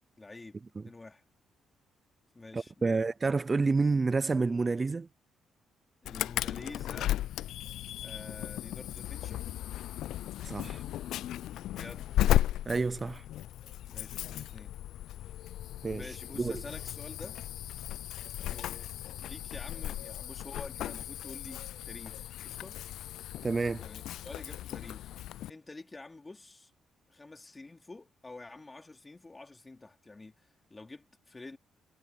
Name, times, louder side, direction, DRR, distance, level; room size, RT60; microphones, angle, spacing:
voice 1, 0.2-0.6 0.8-1.2 2.3-3.1 6.0-7.2 8.0-9.5 11.7-12.1 13.9-14.8 15.9-17.4 18.4-18.9 19.2-22.8 23.8-25.1 25.5-26.7 27.1-31.6, left 3 dB, 20° left, 2.8 m, -48 dB
voice 2, 2.5-5.1 10.4-10.8 12.7-13.2 15.8-16.5 23.4-23.8, right 4 dB, 30° right, 0.4 m, -29 dB
Insect / Alarm, 6.1-25.5, left 13 dB, 80° left, 0.3 m, -35 dB
cardioid pair, 90°, 0 cm